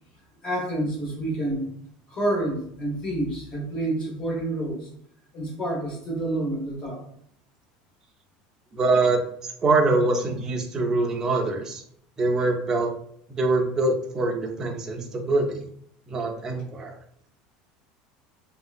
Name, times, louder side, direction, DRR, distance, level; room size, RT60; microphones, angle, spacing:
voice 1, 0.4-1.7 2.1-4.9 5.3-7.0, right 1 dB, 30° left, -1 dB, 1.0 m, -28 dB
voice 2, 8.7-9.2 9.6-11.8 12.2-12.9 13.4-15.6 16.1-16.9, right 2 dB, 20° right, 1 dB, 0.5 m, -24 dB
3.2 x 2.7 x 2.4 m, 0.66 s
cardioid pair, 170°, 3 cm